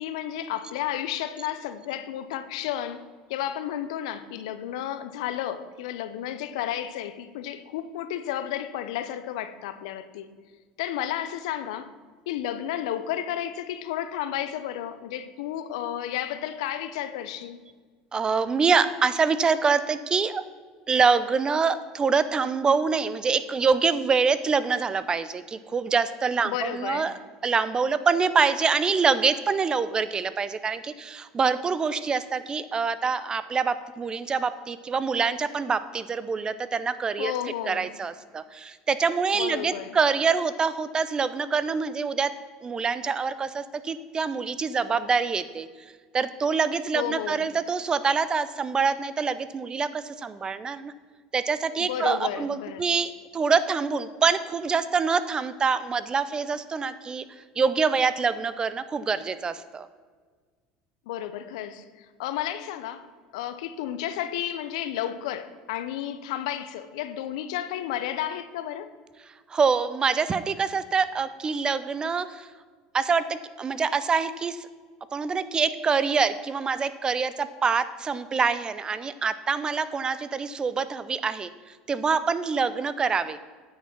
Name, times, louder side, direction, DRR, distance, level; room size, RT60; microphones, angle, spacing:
voice 1, 0.0-3.0 3.3-10.3 10.8-11.9 12.3-17.6 26.4-27.1 37.2-37.9 39.3-40.0 46.9-47.5 51.8-52.8 61.1-63.1 63.3-68.9, left 11 dB, 80° left, 0.7 m, -32 dB
voice 2, 18.1-20.4 20.9-27.1 27.4-37.3 37.7-42.3 42.6-45.7 46.1-50.9 51.3-59.9 69.5-72.5 72.9-74.7 75.1-83.4, right 5 dB, 25° right, 0.5 m, -25 dB
9.5 x 6.0 x 5.9 m
supercardioid pair, 100°, 3 cm